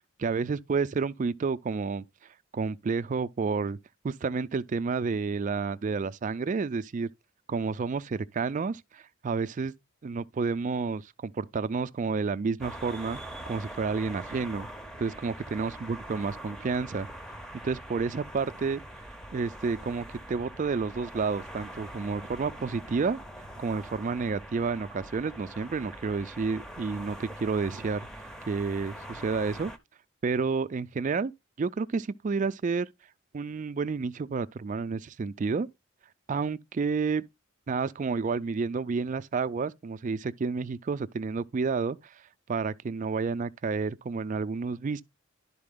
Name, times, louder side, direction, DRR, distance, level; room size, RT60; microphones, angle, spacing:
voice 1, 0.2-2.0 2.5-3.8 4.0-7.1 7.5-9.7 10.0-13.2 13.5-14.7 15.0-17.1 17.6-18.8 19.3-23.2 23.6-28.1 28.5-29.7 30.2-31.3 31.6-32.9 33.3-35.7 36.3-37.2 37.7-42.1 42.5-45.0, right 4 dB, 35° right, 0.3 m, -30 dB
sound 1, 12.6-29.8, right 1 dB, 5° left, 0.6 m, -43 dB
11.0 x 4.2 x 3.6 m
head